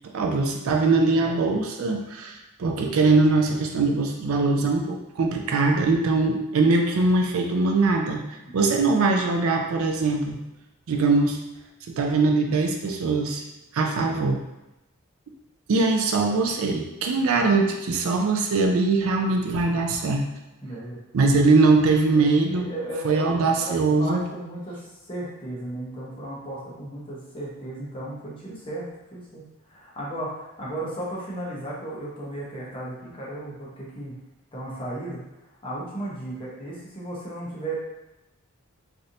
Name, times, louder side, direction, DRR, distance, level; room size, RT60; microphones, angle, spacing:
voice 1, 0.1-8.2 8.5-10.4 10.9-11.4 11.9-13.4 13.7-14.4 15.7-20.3 21.1-22.7 23.0-24.2, right 3 dB, 75° right, 3 dB, 0.4 m, -22 dB
voice 2, 8.4-8.8 20.6-21.0 22.1-34.2 34.5-35.2 35.6-37.7, right 1 dB, 25° left, -6 dB, 0.9 m, -35 dB
3.2 x 2.6 x 2.7 m, 0.96 s
head